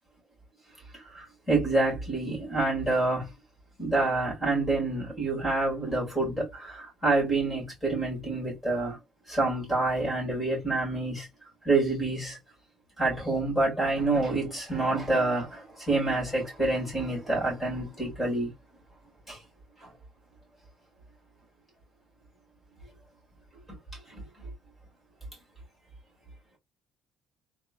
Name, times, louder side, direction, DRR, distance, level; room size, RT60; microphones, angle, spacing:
voice 1, 1.1-3.3 3.8-9.0 9.3-11.3 11.6-12.4 13.0-18.5 19.3-19.4 24.1-24.5, right 2 dB, 5° left, 2.2 m, -27 dB
3.6 x 2.4 x 2.3 m
cardioid pair, 145°, 0 cm